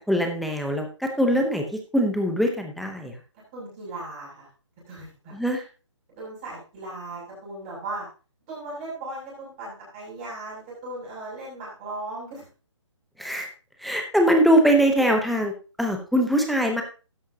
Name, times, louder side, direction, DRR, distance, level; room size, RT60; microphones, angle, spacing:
voice 1, 0.1-1.6 1.9-3.2 5.3-5.6 13.2-13.5 13.8-15.5 15.8-16.8, equal, ahead, 3 dB, 0.8 m, -22 dB
voice 2, 3.5-4.5 4.9-5.3 6.1-8.0 8.5-12.4, right 2 dB, 20° right, -6 dB, 6.8 m, -37 dB
12.5 x 10.0 x 2.8 m, 0.33 s
hypercardioid pair, 165°, 16 cm